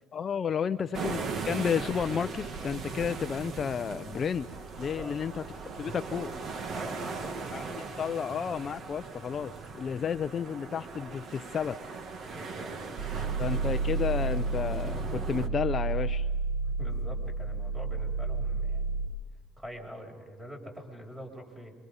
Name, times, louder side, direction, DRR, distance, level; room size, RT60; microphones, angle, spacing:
voice 1, 0.1-4.5 4.8-5.4 5.8-6.3 7.5-7.6 8.0-11.8 13.4-16.3, left 7 dB, 35° left, 10 dB, 0.6 m, -32 dB
sound 1, 0.9-15.5, right 4 dB, 45° right, 1.9 m, -39 dB
voice 2, 6.7-7.4 7.7-8.1 12.2-13.3 16.6-19.1 19.6-21.7, equal, 15° right, 2 dB, 6.6 m, -45 dB
sound 2, 13.0-19.1, right 4 dB, 60° right, 3.3 m, -31 dB
28.0 x 25.0 x 5.4 m, 1.4 s
cardioid pair, 115°, 0 cm